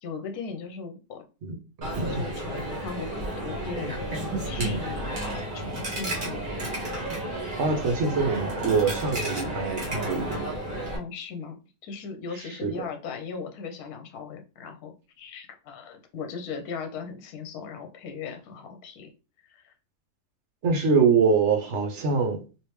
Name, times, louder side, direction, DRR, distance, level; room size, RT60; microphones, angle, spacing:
voice 1, 0.0-1.2 2.1-6.7 10.9-11.6 11.8-19.1 19.5-19.7, left 5 dB, 70° left, 1.2 m, -38 dB
voice 2, 1.4-2.2 4.6-4.8 7.6-10.4 12.6-12.7 20.6-22.4, right 5 dB, 55° right, 1.0 m, -24 dB
Coin (dropping), 1.8-11.0, right 1 dB, 35° right, 1.1 m, -32 dB
3.3 x 2.8 x 3.1 m
omnidirectional pair, 1.7 m